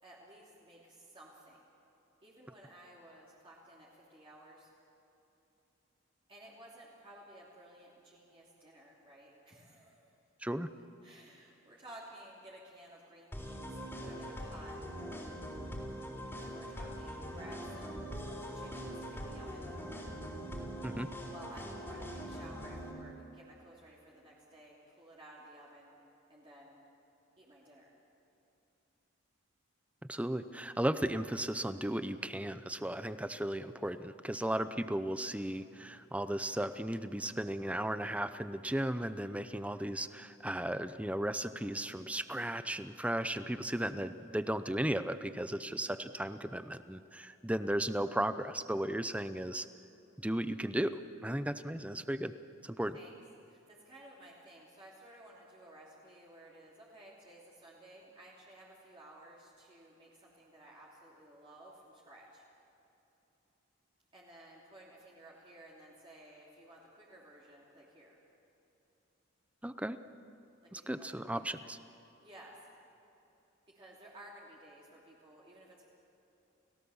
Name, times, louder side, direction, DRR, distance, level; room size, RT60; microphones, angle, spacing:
voice 1, 0.0-1.7 2.2-4.7 6.3-10.1 11.0-13.7 14.0-14.8 16.4-19.7 21.2-25.9 26.3-26.8 27.4-27.9 52.9-53.1 53.5-62.4 64.1-68.2 70.6-71.1 71.6-71.8 72.2-72.6 73.7-75.8, right 1 dB, 25° right, -5 dB, 3.0 m, -55 dB
sound 1, 13.3-22.9, equal, 10° left, 3.7 m, -42 dB
voice 2, 30.1-49.7 50.2-52.3 52.6-53.0 69.6-70.0 70.7-71.8, right 1 dB, 5° right, 12 dB, 0.6 m, -35 dB
30.0 x 17.5 x 7.2 m, 3.0 s
head